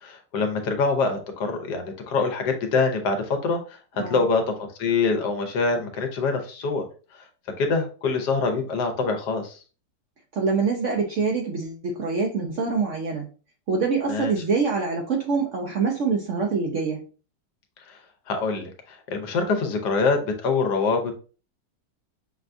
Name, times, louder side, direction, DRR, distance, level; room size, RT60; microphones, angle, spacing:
voice 1, 0.0-6.9 7.6-9.6 14.1-14.3 17.9-18.0 18.3-21.1, left 4 dB, 75° left, 5 dB, 1.4 m, -25 dB
voice 2, 10.3-13.3 13.7-17.1, right 4 dB, 65° right, 1 dB, 0.8 m, -25 dB
6.0 x 2.3 x 2.5 m, 0.36 s
omnidirectional pair, 1.9 m